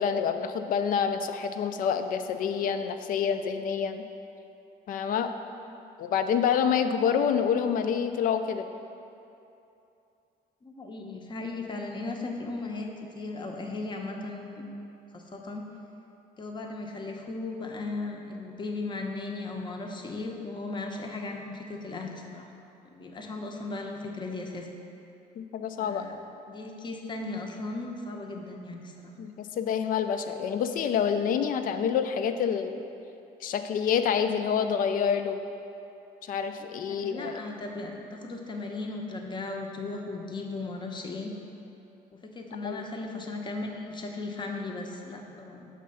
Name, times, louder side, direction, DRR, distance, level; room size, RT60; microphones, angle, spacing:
voice 1, 0.0-4.0 4.9-5.3 6.0-8.7 25.4-26.0 29.2-32.8 33.4-35.4 36.2-37.3 42.6-42.8, left 7 dB, 55° left, 8 dB, 0.4 m, -27 dB
voice 2, 10.6-12.9 13.2-14.7 15.1-15.7 16.4-22.5 22.8-24.7 25.8-26.2 26.5-29.1 36.9-41.3 42.2-45.7, left 3 dB, 25° left, 2 dB, 0.7 m, -37 dB
6.4 x 3.4 x 5.4 m, 2.8 s
cardioid pair, 110°, 17 cm